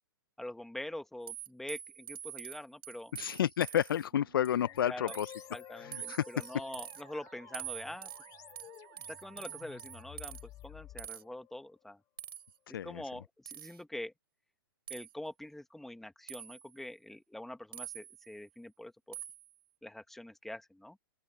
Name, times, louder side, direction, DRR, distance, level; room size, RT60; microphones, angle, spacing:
voice 1, 0.4-3.1 4.8-5.1 5.5-8.1 9.1-12.0 12.7-14.1 14.9-19.2 19.8-21.0, left 1 dB, ahead, 1.4 m, -45 dB
sound 1, 1.3-4.1 4.4-4.8 5.1-5.5 5.9-7.0 7.5-10.4 11.0-11.2 12.2-12.6 13.5-13.8 14.9-15.1 16.3-16.7 17.7-18.3 19.1-19.5, right 11 dB, 80° right, 3.6 m, -45 dB
voice 2, 3.1-5.3 5.8-6.3 12.7-13.0, left 10 dB, 70° left, 0.5 m, -31 dB
Musical instrument, 4.1-11.0, right 23 dB, 45° right, 7.7 m, -60 dB
sound 2, 4.5-11.6, left 15 dB, 30° left, 2.8 m, -53 dB
open air
hypercardioid pair, 125°, 12 cm